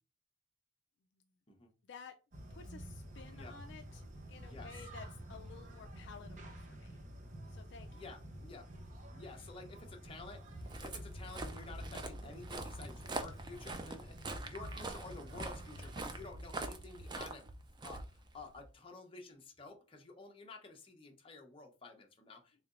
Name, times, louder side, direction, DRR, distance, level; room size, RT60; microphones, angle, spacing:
voice 1, 1.8-2.1 2.5-7.0 7.5-8.0, left 5 dB, 60° left, 0.3 m, -54 dB
sound 1, 2.3-16.3, equal, 40° right, 0.7 m, -50 dB
voice 2, 4.4-4.7 7.9-8.8 9.1-17.5 17.8-22.7, left 3 dB, 25° left, 0.7 m, -52 dB
Walk footsteps, 10.4-18.7, right 2 dB, 20° right, 0.3 m, -44 dB
3.7 x 3.1 x 2.4 m
head